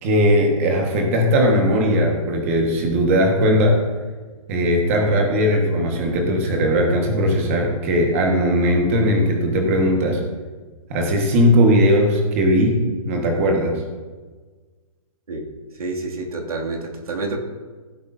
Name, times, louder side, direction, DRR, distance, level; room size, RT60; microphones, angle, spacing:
voice 1, 0.0-3.8 4.5-10.2 10.9-12.8 13.0-13.7, equal, 25° right, 1 dB, 1.5 m, -18 dB
voice 2, 15.8-17.4, right 3 dB, 90° right, 0 dB, 2.5 m, -28 dB
16.0 x 8.0 x 2.7 m, 1.4 s
hypercardioid pair, 175°, 18 cm